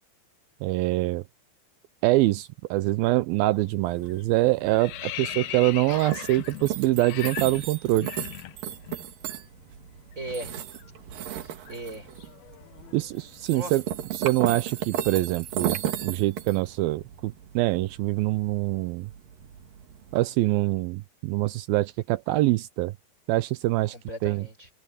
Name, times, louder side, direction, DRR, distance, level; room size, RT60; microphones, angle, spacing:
voice 1, 0.6-1.2 2.0-8.1 12.9-13.8 14.1-19.1 20.1-22.9 23.3-24.0 24.2-24.5, right 18 dB, 85° right, 2.1 m, -24 dB
sound 1, 3.5-3.8 4.1-9.0 9.3-9.5 9.8-13.9, left 14 dB, 70° left, 2.7 m, -39 dB
sound 2, 3.8-20.3, right 10 dB, 60° right, 3.1 m, -36 dB
voice 2, 10.2-10.5 11.4-12.1 13.5-13.7 23.9-24.7, right 1 dB, 20° right, 6.1 m, -37 dB
open air
omnidirectional pair, 4.8 m